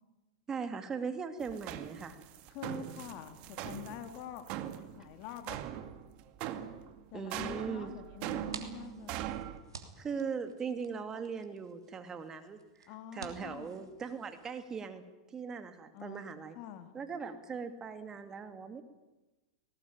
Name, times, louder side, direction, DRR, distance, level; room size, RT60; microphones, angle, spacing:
voice 1, 0.5-2.2 7.1-7.9 10.0-15.0 15.3-16.6 16.9-18.8, right 6 dB, 25° right, 8 dB, 2.4 m, -39 dB
sound 1, 1.4-9.6, right 11 dB, 50° right, 2.1 m, -41 dB
voice 2, 2.5-4.5 4.9-5.6 7.1-9.2 12.9-13.7 15.9-16.9, left 11 dB, 50° left, 7 dB, 3.1 m, -46 dB
sound 2, 8.2-14.5, right 5 dB, 85° right, 3.1 m, -52 dB
19.5 x 18.5 x 9.6 m, 1.1 s
hypercardioid pair, 100°, 2 cm